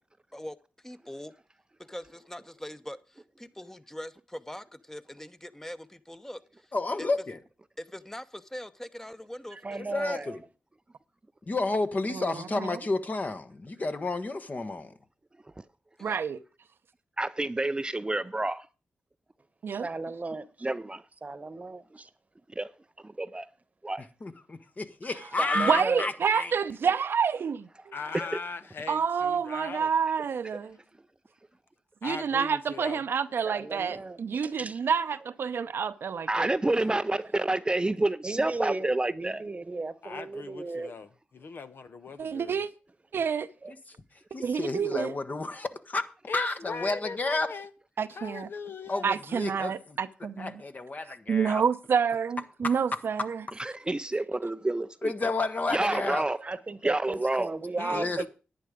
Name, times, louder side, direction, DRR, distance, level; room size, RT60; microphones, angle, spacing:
voice 1, 0.8-1.3 1.9-6.7 7.0-7.1 7.8-9.6 9.9-10.2 16.0-16.2, left 1 dB, 10° left, 1.0 m, -42 dB
voice 2, 6.7-7.4 9.9-10.4 11.5-14.9 24.2-26.5 44.3-46.0 46.3-47.5 48.9-49.7 50.4-51.6 52.6-52.7 55.0-56.3 57.9-58.2, left 3 dB, 40° left, 1.3 m, -31 dB
voice 3, 9.5-10.4 19.8-20.7 21.2-22.1 25.0-26.1 33.4-34.8 38.2-40.9 43.6-43.7 54.1-54.3 56.4-58.3, right 3 dB, 35° right, 1.1 m, -36 dB
voice 4, 12.1-12.8 16.0-16.4 19.6-19.9 25.5-27.9 28.9-30.8 32.0-36.5 42.2-42.7 43.1-43.5 44.4-45.1 48.0-48.5 49.0-50.6 51.3-53.4, right 6 dB, 70° right, 0.7 m, -28 dB
voice 5, 17.2-18.6 20.6-21.0 22.6-22.7 23.2-23.5 23.8-24.1 28.1-28.3 36.3-39.4 53.6-55.1 55.7-56.4 56.8-57.5, right 2 dB, 20° right, 0.5 m, -28 dB
voice 6, 27.9-29.9 32.0-33.0 40.0-41.1 41.3-42.6 46.3-47.7 48.1-49.1 57.8-58.3, left 4 dB, 60° left, 0.9 m, -39 dB
10.5 x 9.1 x 5.1 m
supercardioid pair, 40°, 4 cm